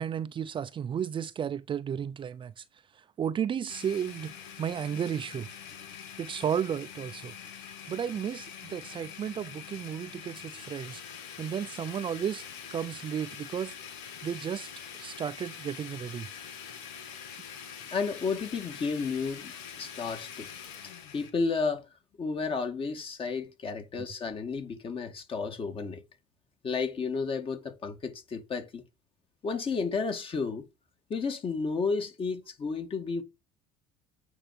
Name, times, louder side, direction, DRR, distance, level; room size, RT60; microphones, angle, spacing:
voice 1, 0.0-2.6 2.9-4.3 4.6-5.5 6.2-7.3 7.9-11.0 11.4-12.4 12.7-13.7 14.2-14.7 15.0-16.3, right 8 dB, 35° right, 0.5 m, -33 dB
Domestic sounds home sounds, 3.7-21.3, left 8 dB, 90° left, 1.9 m, -44 dB
voice 2, 17.9-20.5 21.1-21.9 22.2-26.0 26.6-28.8 29.4-30.7 31.1-33.2, left 4 dB, 35° left, 2.2 m, -32 dB
8.8 x 4.9 x 6.0 m
supercardioid pair, 100°, 15 cm